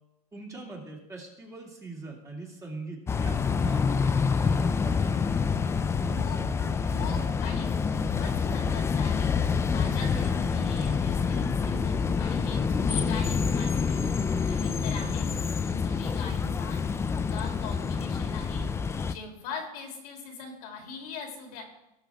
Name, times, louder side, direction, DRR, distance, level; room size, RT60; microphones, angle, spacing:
voice 1, 0.3-5.3 13.9-14.2 15.0-15.1, right 3 dB, 15° right, -1 dB, 2.4 m, -42 dB
sound 1, 3.1-19.1, left 5 dB, 15° left, 0.4 m, -27 dB
sound 2, 5.7-7.3 7.5-8.8 9.3-9.7 9.9-12.1 12.3-13.6 14.1-14.5 14.7-15.3, right 6 dB, 45° right, 2.0 m, -44 dB
voice 2, 6.0-6.4 6.8-9.3 9.7-14.1 14.5-15.2 15.6-17.0 17.3-18.7 19.0-21.7, left 4 dB, 70° left, 1 dB, 3.2 m, -42 dB
18.5 x 6.1 x 3.6 m, 0.87 s
supercardioid pair, 130°, 20 cm